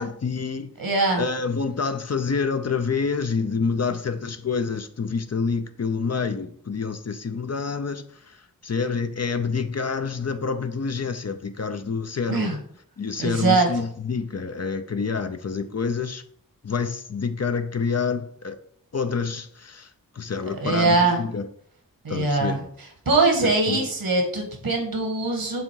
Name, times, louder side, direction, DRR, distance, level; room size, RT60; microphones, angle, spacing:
voice 1, 0.0-0.8 1.2-12.6 13.0-16.2 16.6-18.6 18.9-21.5 22.1-22.6 23.4-23.9, left 5 dB, 45° left, 0.6 m, -27 dB
voice 2, 0.8-1.2 12.3-12.6 13.2-13.7 20.6-21.2 22.0-22.6 23.0-25.6, right 3 dB, 80° right, 1.7 m, -22 dB
7.5 x 2.7 x 4.6 m
cardioid pair, 45°, 35 cm